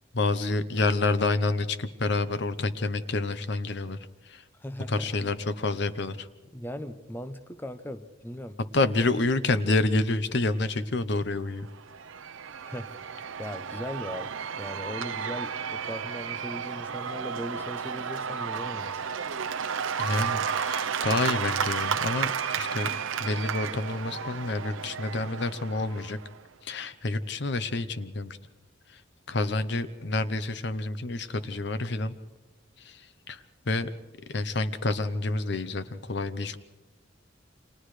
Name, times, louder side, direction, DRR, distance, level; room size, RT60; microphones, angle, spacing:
voice 1, 0.1-4.0 4.2-4.4 4.9-6.3 8.7-11.7 20.0-22.3 22.6-22.9 23.2-26.2 26.6-28.4 28.9-29.0 29.3-32.2 32.8-33.9 34.3-36.6, left 2 dB, 60° left, 12 dB, 0.8 m, -28 dB
voice 2, 4.5-5.3 6.5-8.6 12.6-14.3 14.6-19.0, equal, 10° left, 10 dB, 0.7 m, -39 dB
Cheering / Applause / Crowd, 11.6-26.4, right 7 dB, 80° right, 0.6 m, -32 dB
30.0 x 26.5 x 3.3 m, 1.2 s
head